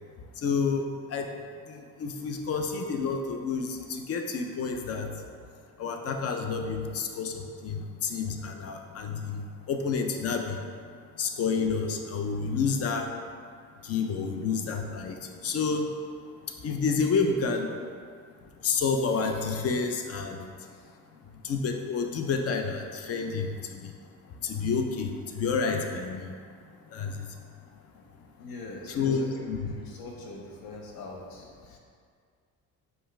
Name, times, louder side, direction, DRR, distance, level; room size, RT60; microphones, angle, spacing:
voice 1, 0.4-1.3 1.7-5.1 5.8-10.6 11.2-13.1 13.8-15.2 15.4-15.9 16.6-17.7 18.6-20.5 21.4-23.9 24.4-26.3 26.9-27.3 28.9-29.7, left 5 dB, 40° left, 4 dB, 0.4 m, -29 dB
voice 2, 28.4-29.1 29.3-29.5 29.7-31.8, left 2 dB, 70° left, 0 dB, 0.8 m, -43 dB
5.3 x 2.4 x 3.1 m, 2.1 s
cardioid pair, 120°, 38 cm